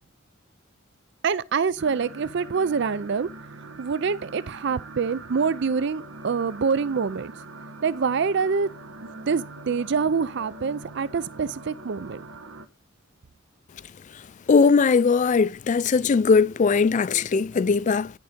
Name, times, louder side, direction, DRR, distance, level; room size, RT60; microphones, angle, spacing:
voice 1, 1.2-3.3 3.8-7.3 7.8-8.7 9.0-12.2, right 5 dB, 60° right, 0.4 m, -25 dB
sound 1, 1.8-12.7, right 2 dB, 85° right, 1.1 m, -43 dB
voice 2, 14.5-18.1, left 5 dB, 35° left, 0.3 m, -20 dB
11.0 x 4.0 x 5.1 m
head